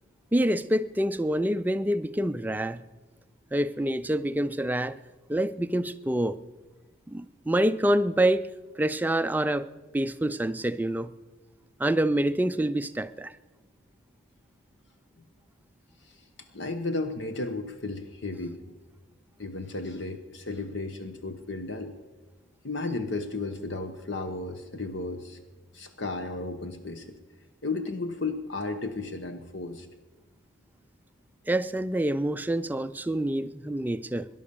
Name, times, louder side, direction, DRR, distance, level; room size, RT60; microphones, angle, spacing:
voice 1, 0.3-2.8 3.5-5.0 5.3-6.4 7.1-8.5 8.8-11.1 11.8-13.3 31.5-34.3, right 1 dB, 10° right, 0.4 m, -26 dB
voice 2, 16.5-18.6 19.4-21.9 22.6-25.4 25.7-27.1 27.6-29.9, left 3 dB, 60° left, 1.0 m, -34 dB
17.5 x 11.0 x 6.9 m
head